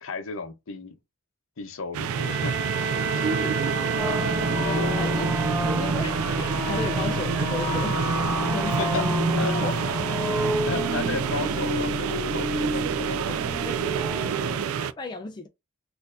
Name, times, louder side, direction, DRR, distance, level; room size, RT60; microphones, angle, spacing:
voice 1, 0.0-0.9 1.6-2.5 4.7-5.0 8.8-9.0 9.4-9.6 10.7-13.4, left 4 dB, 65° left, 0.7 m, -33 dB
sound 1, 1.9-14.9, right 7 dB, 75° right, 0.3 m, -28 dB
Bowed string instrument, 2.0-6.0, right 3 dB, 55° right, 0.9 m, -31 dB
voice 2, 3.1-3.8 4.6-5.3 5.6-9.2 9.6-9.8 13.6-14.4 14.7-15.5, left 2 dB, 20° left, 0.4 m, -35 dB
sound 2, 4.0-14.6, left 1 dB, ahead, 1.8 m, -29 dB
4.3 x 2.6 x 2.5 m
head